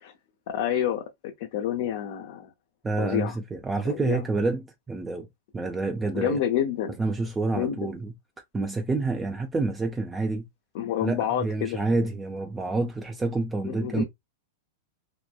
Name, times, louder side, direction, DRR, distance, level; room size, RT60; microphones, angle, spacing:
voice 1, 0.5-2.5 3.0-3.4 3.8-4.2 6.1-7.0 7.5-7.9 10.7-11.8 13.6-14.0, left 10 dB, 60° left, 0.4 m, -28 dB
voice 2, 2.8-5.3 5.5-6.4 7.0-8.1 8.5-10.5 11.0-14.0, right 3 dB, 15° right, 0.3 m, -28 dB
2.9 x 2.1 x 2.2 m
hypercardioid pair, 110°, 0 cm